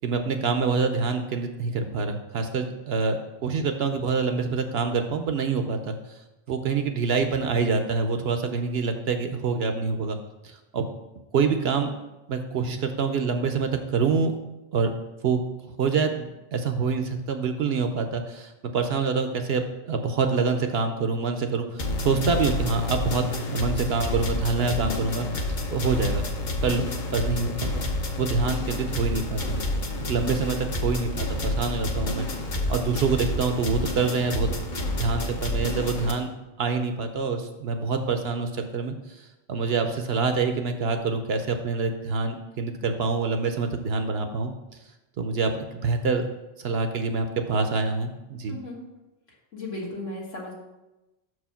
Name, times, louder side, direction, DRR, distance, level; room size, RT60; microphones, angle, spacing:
voice 1, 0.0-5.9 6.5-10.2 10.4-10.9 11.3-11.9 12.3-14.3 14.7-14.9 15.2-15.4 15.8-25.3 25.7-26.2 26.6-27.9 28.2-29.6 30.1-32.3 32.7-34.5 34.9-36.3 36.6-38.9 39.5-44.5 45.2-46.3 46.6-48.6, right 4 dB, 60° right, 7 dB, 0.8 m, -26 dB
sound 1, 21.8-36.1, left 1 dB, 45° left, 0.8 m, -29 dB
voice 2, 48.5-48.8 49.5-50.5, left 2 dB, 70° left, -3 dB, 1.8 m, -35 dB
6.2 x 4.8 x 5.6 m, 1.0 s
omnidirectional pair, 1.3 m